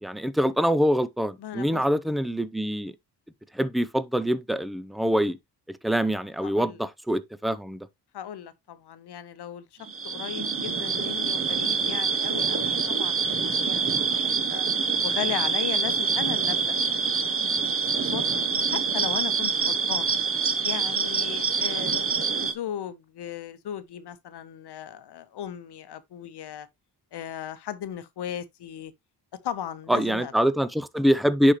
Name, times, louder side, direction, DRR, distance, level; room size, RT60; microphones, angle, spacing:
voice 1, 0.0-2.9 3.6-5.4 5.8-7.9 29.9-31.5, equal, ahead, 0.4 m, -24 dB
voice 2, 1.4-1.8 6.4-6.8 8.1-9.8 10.0-14.6 15.0-17.6 17.9-18.3 18.7-20.1 20.6-26.7 27.1-28.9 29.4-30.3, left 10 dB, 70° left, 0.9 m, -37 dB
sound 1, 9.9-22.5, right 5 dB, 35° right, 0.9 m, -26 dB
10.0 x 4.3 x 3.0 m
wide cardioid pair, 115°, 41 cm